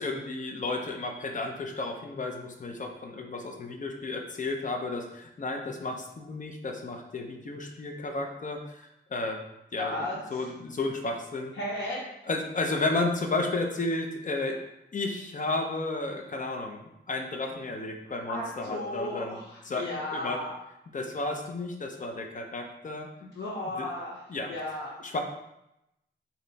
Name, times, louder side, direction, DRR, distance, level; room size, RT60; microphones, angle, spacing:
voice 1, 0.0-9.4 9.7-11.5 12.3-14.6 14.9-16.8 17.1-19.4 19.7-20.4 20.9-23.1 23.8-23.9 24.3-24.5 25.0-25.2, left 2 dB, 40° left, 2 dB, 0.6 m, -32 dB
voice 2, 9.8-10.5 11.6-12.0 18.3-20.5 23.3-24.2 24.5-25.0, left 1 dB, 85° left, -6 dB, 0.8 m, -34 dB
3.2 x 2.8 x 4.0 m, 0.86 s
wide cardioid pair, 135°, 19 cm